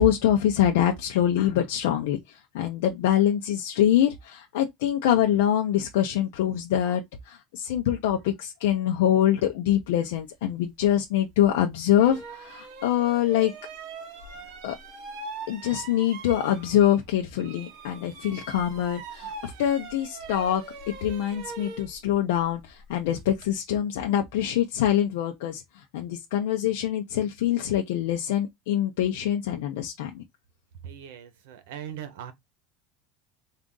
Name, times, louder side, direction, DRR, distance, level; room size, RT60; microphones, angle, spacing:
voice 1, 0.0-13.5 14.6-14.8 15.5-20.6 21.0-30.2, left 11 dB, 85° left, 0.6 m, -24 dB
sound 1, 11.3-11.4 11.9-17.1 17.4-23.5, right 4 dB, 50° right, 1.1 m, -42 dB
voice 2, 30.8-32.3, right 9 dB, 90° right, 0.9 m, -40 dB
3.6 x 2.5 x 3.8 m
cardioid pair, 175°, 0 cm